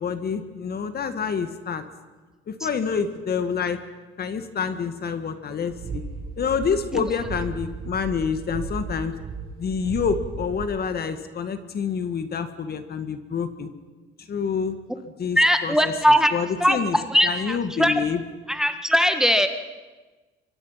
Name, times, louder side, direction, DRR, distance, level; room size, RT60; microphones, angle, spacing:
voice 1, 0.0-1.8 2.5-3.8 4.2-6.0 6.4-9.1 9.6-13.7 14.2-14.8 15.0-15.9 16.3-17.0 17.2-18.2, left 6 dB, 45° left, 9 dB, 1.9 m, -27 dB
sound 1, 5.7-10.7, right 5 dB, 50° right, 6.0 m, -35 dB
voice 2, 15.4-16.3 16.6-18.0 18.5-19.5, equal, ahead, 8 dB, 1.5 m, -20 dB
26.5 x 23.5 x 5.8 m, 1.3 s
cardioid pair, 110°, 21 cm